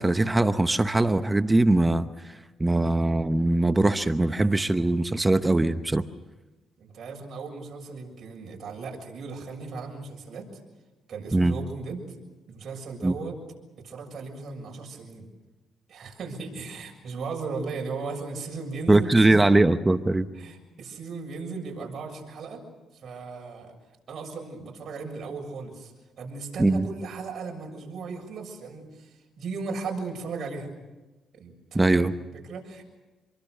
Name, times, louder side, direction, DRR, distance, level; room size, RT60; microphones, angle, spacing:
voice 1, 0.0-2.3 2.6-6.0 11.3-11.6 13.0-13.2 18.9-20.3 26.6-26.9 31.7-32.1, right 2 dB, 15° right, 10 dB, 0.9 m, -21 dB
voice 2, 6.8-10.4 11.1-12.0 12.5-13.4 13.8-15.3 15.9-19.5 20.3-22.6 22.9-23.7 24.1-25.9 26.2-30.7 31.4-32.0 32.3-32.8, right 4 dB, 55° right, 1 dB, 7.0 m, -36 dB
27.0 x 23.0 x 6.8 m, 1.1 s
cardioid pair, 90°, 0 cm